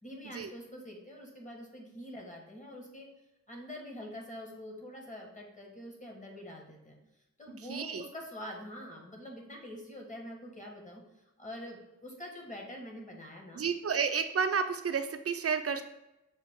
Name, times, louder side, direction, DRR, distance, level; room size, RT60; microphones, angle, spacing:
voice 1, 0.0-3.1 3.5-7.0 7.4-11.0 11.4-13.6, left 1 dB, 25° left, -1 dB, 1.3 m, -45 dB
voice 2, 7.7-8.0 13.5-15.8, right 6 dB, 50° right, 8 dB, 0.5 m, -31 dB
6.3 x 2.3 x 3.6 m, 0.94 s
wide cardioid pair, 60°, 32 cm